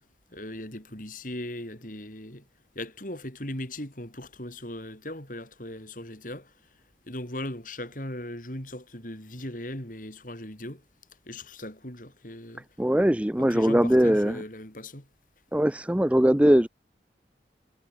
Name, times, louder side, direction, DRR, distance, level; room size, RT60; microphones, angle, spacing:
voice 1, 0.3-2.5 2.8-6.5 7.1-10.8 11.3-12.7 13.4-15.1, left 1 dB, 50° left, 6.9 m, -38 dB
voice 2, 12.8-14.4 15.5-16.7, equal, 5° right, 0.5 m, -21 dB
head